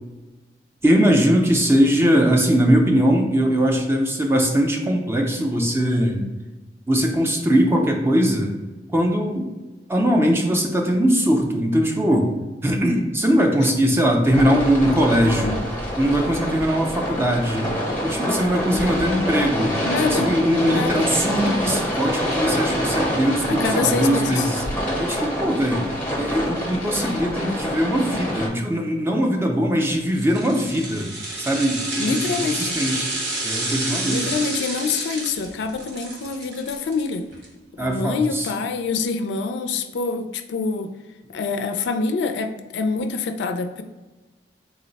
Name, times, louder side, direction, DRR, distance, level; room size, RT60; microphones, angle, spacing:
voice 1, 0.8-6.3 6.9-8.5 8.9-9.5 9.9-12.3 12.6-15.6 16.0-17.7 18.0-19.8 20.0-24.6 25.0-25.8 26.2-31.1 31.4-33.1 33.4-34.2 37.8-38.5, equal, 15° right, 1 dB, 0.4 m, -20 dB
sound 1, 14.3-28.5, equal, 10° left, 0.8 m, -26 dB
voice 2, 19.9-20.3 20.7-21.1 23.5-24.4 32.0-32.7 34.1-37.3 37.8-40.9 41.3-43.8, left 4 dB, 75° left, 6 dB, 0.3 m, -25 dB
sound 2, 30.1-37.5 37.8-37.9, right 2 dB, 80° right, 1.0 m, -29 dB
3.9 x 2.1 x 3.9 m, 1.2 s
head